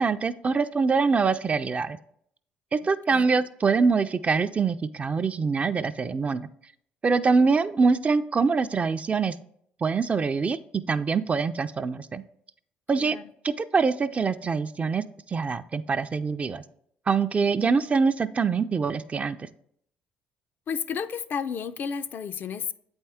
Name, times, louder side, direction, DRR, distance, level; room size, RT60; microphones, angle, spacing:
voice 1, 0.0-2.0 2.7-6.5 7.0-9.3 9.8-10.6 10.9-12.2 12.9-13.2 13.4-15.0 15.3-16.6 17.1-19.5, right 4 dB, 30° right, 0.4 m, -24 dB
voice 2, 3.1-3.4 13.0-13.3 20.7-22.7, left 6 dB, 50° left, 0.4 m, -32 dB
7.9 x 4.4 x 3.5 m
supercardioid pair, 70°, 4 cm